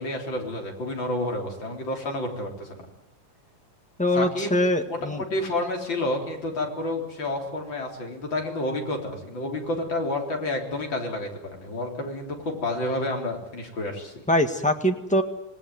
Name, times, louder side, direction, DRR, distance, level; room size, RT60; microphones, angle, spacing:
voice 1, 0.0-2.9 4.1-4.6 4.9-14.1, left 1 dB, 40° left, 2 dB, 4.3 m, -30 dB
voice 2, 4.0-5.2 14.3-15.2, left 1 dB, 5° left, 4 dB, 0.8 m, -23 dB
27.0 x 19.0 x 9.4 m, 0.85 s
omnidirectional pair, 3.5 m